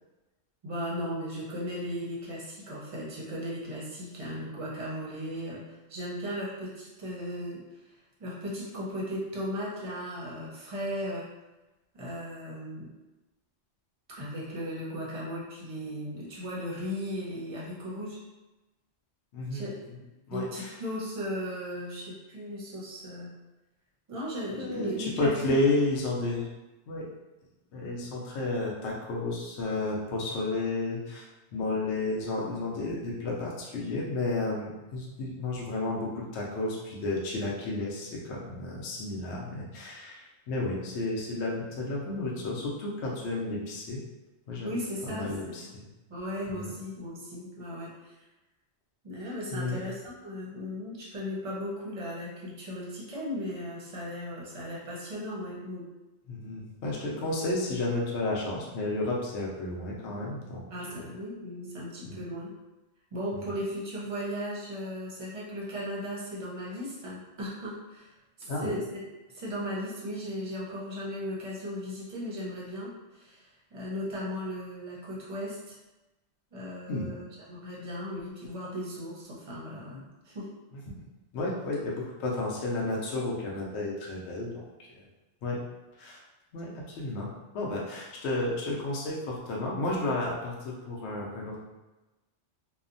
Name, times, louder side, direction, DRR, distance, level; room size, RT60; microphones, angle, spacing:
voice 1, 0.6-7.6 8.2-11.3 11.9-12.9 14.2-18.2 19.5-19.8 20.3-23.3 24.1-25.3 44.6-45.5 46.1-48.2 49.0-55.9 60.7-62.5 63.1-68.1 68.4-68.8 69.3-75.8 76.5-80.0 80.2-80.5, equal, 35° right, -5 dB, 0.6 m, -36 dB
voice 2, 19.3-19.6 20.3-20.7 24.6-26.5 26.9-27.1 27.7-44.0 44.5-44.8 45.1-45.8 46.5-46.7 49.5-49.8 56.3-60.6 60.9-61.0 62.0-62.2 63.5-63.6 68.4-68.7 76.9-77.1 81.3-85.0 85.4-85.6 86.0-86.2 86.5-87.3 87.5-91.6, left 2 dB, 70° left, -3 dB, 0.8 m, -32 dB
2.7 x 2.0 x 2.5 m, 1.1 s
omnidirectional pair, 1.2 m